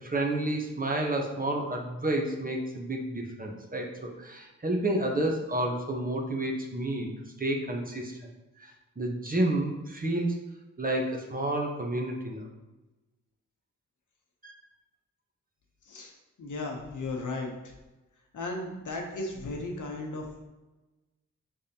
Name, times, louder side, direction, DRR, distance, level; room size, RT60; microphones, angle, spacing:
voice 1, 0.0-7.1 7.4-8.2 8.6-10.4 10.8-12.5 14.4-14.5, right 1 dB, 25° right, 1 dB, 0.9 m, -30 dB
voice 2, 16.4-17.7 18.3-20.5, left 2 dB, 70° left, 1 dB, 1.0 m, -35 dB
5.2 x 3.4 x 2.9 m, 1.1 s
cardioid pair, 45°, 32 cm